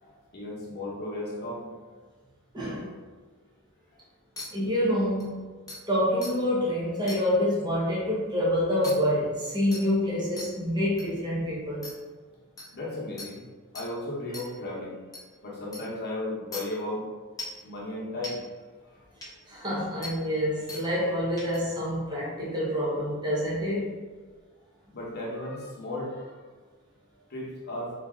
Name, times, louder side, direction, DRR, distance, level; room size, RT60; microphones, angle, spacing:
voice 1, 0.0-1.7 12.7-13.4 13.7-15.0 15.4-17.1 17.6-18.4 24.9-26.4 27.3-27.9, left 1 dB, 50° left, -4 dB, 0.9 m, -35 dB
voice 2, 2.5-2.9 4.5-5.5 5.9-11.9 19.5-23.9, equal, 20° right, -6 dB, 0.9 m, -27 dB
sound 1, 4.4-4.5 5.2-5.3 5.7-5.8 6.2-6.3 7.1-7.2 8.8-8.9 9.7-9.8 10.4-10.5 11.0-11.1 11.8-11.9 12.6-12.7 13.2-13.3 13.7-13.9 14.3-14.4 15.1-15.2 15.7-15.8 16.5-16.6 17.4-17.6 18.2-18.3 19.2-19.3 20.0-20.1 20.7-20.8 21.4-21.6, left 2 dB, 15° left, 0.7 m, -38 dB
4.0 x 2.7 x 3.5 m, 1.4 s
head